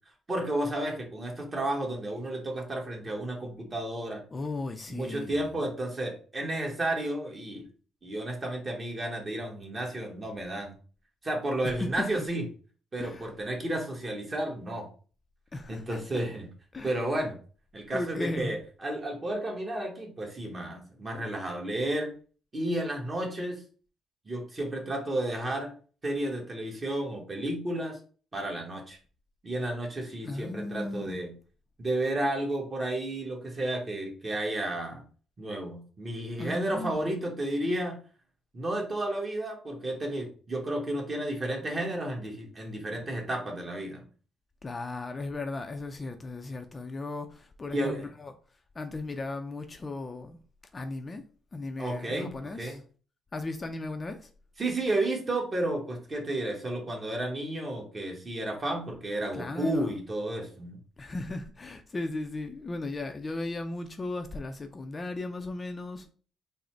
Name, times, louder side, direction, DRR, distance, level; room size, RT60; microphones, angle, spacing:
voice 1, 0.3-4.2 4.9-7.7 8.0-10.7 11.2-12.4 12.9-14.9 15.7-16.5 16.8-17.4 17.7-22.1 22.5-23.6 24.2-25.7 26.0-28.0 28.3-29.0 29.4-31.3 31.8-35.0 35.4-38.0 38.5-44.0 47.7-48.0 51.8-52.8 54.6-60.8, right 1 dB, 35° right, 1.2 m, -32 dB
voice 2, 4.3-5.5 11.6-12.2 13.0-13.3 15.5-16.2 16.7-17.0 17.9-18.6 30.2-31.2 36.4-37.1 44.6-48.3 48.7-50.4 50.7-51.2 51.5-52.8 53.3-54.3 59.3-59.9 61.0-66.1, left 2 dB, 30° left, 0.4 m, -36 dB
3.9 x 2.1 x 4.4 m
cardioid pair, 90°, 0 cm